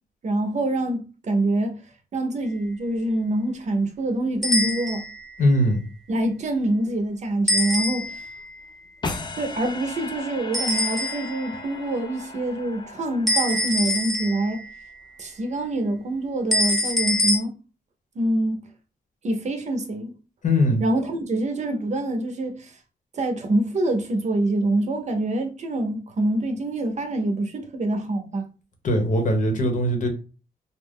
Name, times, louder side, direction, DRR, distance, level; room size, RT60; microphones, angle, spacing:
voice 1, 0.2-1.8 2.1-5.0 6.1-8.2 9.4-14.6 15.2-17.6 18.1-18.6 19.2-20.1 20.8-22.8 23.1-28.5, right 1 dB, 45° right, 0.7 m, -25 dB
sound 1, 4.4-5.2 7.5-8.3 10.5-11.5 13.3-14.7 16.5-17.4, left 1 dB, ahead, 0.7 m, -24 dB
voice 2, 5.4-5.8 20.4-20.8 28.8-30.1, left 1 dB, 50° left, 0.9 m, -20 dB
sound 2, 9.0-14.2, left 3 dB, 30° left, 0.4 m, -36 dB
2.5 x 2.1 x 3.5 m
cardioid pair, 105°, 16 cm